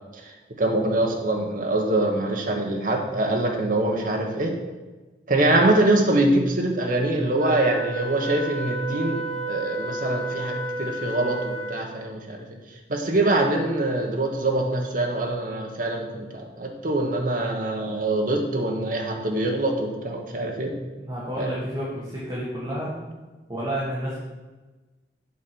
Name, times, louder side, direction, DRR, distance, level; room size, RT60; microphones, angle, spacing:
voice 1, 0.6-4.5 5.3-12.6 12.9-20.7 21.4-21.5, right 2 dB, 50° right, 2 dB, 1.2 m, -24 dB
Wind instrument woodwind instrument, 7.4-12.0, right 3 dB, 20° left, 1.1 m, -32 dB
voice 2, 21.0-22.9 23.5-24.2, equal, 25° right, -7 dB, 1.8 m, -30 dB
7.3 x 5.1 x 6.0 m, 1.2 s
head